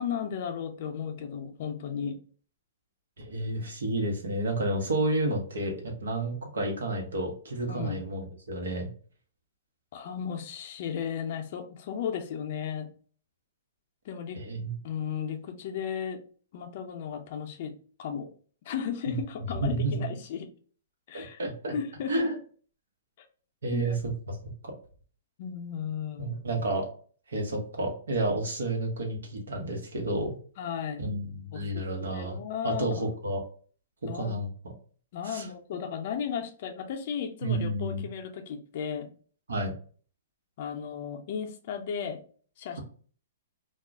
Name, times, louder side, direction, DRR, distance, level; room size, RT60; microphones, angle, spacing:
voice 1, 0.0-2.2 7.7-8.0 9.9-12.9 14.0-14.4 14.8-16.2 16.5-18.3 18.6-20.5 21.1-21.4 21.7-22.3 23.7-24.0 25.4-26.4 30.6-31.0 31.5-33.1 34.0-34.4 35.1-39.1 40.6-42.2 42.6-42.8, left 7 dB, 55° left, 5 dB, 0.5 m, -35 dB
voice 2, 3.2-8.9 14.3-14.8 19.1-19.2 19.6-19.9 21.1-21.7 22.1-22.3 23.6-24.4 24.6-24.7 26.2-26.9 27.3-30.3 31.0-32.4 32.6-33.4 34.1-34.7 35.2-35.5 37.4-38.0 39.5-39.7, right 2 dB, 90° right, 1 dB, 0.9 m, -30 dB
2.3 x 2.0 x 3.5 m, 0.43 s
hypercardioid pair, 140°, 0 cm